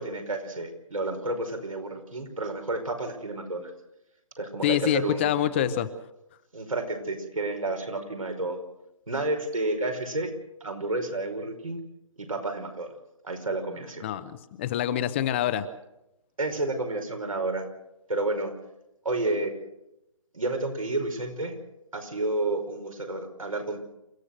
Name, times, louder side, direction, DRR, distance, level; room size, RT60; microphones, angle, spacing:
voice 1, 0.0-3.7 4.4-5.3 5.6-5.7 6.5-8.6 9.1-10.3 10.6-11.8 12.2-12.9 13.2-14.1 16.4-17.7 18.1-18.5 19.1-19.5 20.3-21.5 21.9-23.8, right 2 dB, 85° right, 4 dB, 5.3 m, -30 dB
voice 2, 4.6-5.9 14.0-15.7, left 11 dB, 20° left, 12 dB, 0.8 m, -26 dB
28.5 x 15.0 x 6.6 m, 0.91 s
figure-of-eight pair, 150°, 17 cm